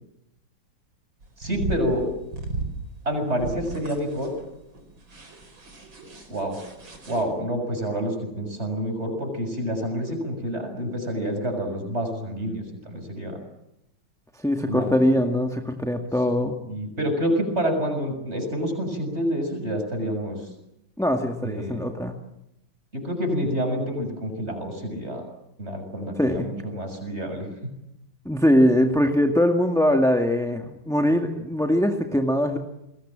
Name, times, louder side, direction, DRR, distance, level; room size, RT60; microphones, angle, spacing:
sound 1, 1.2-7.2, right 2 dB, 85° right, 5.3 m, -35 dB
voice 1, 1.4-2.0 3.1-4.3 6.3-6.6 7.1-13.4 14.7-14.9 16.7-20.4 21.4-21.8 22.9-25.2 25.6-27.7, equal, 35° right, 5 dB, 6.9 m, -28 dB
voice 2, 14.4-16.6 21.0-22.1 26.1-26.5 28.3-32.6, equal, ahead, 3 dB, 1.8 m, -22 dB
29.5 x 21.0 x 7.5 m, 0.86 s
omnidirectional pair, 2.1 m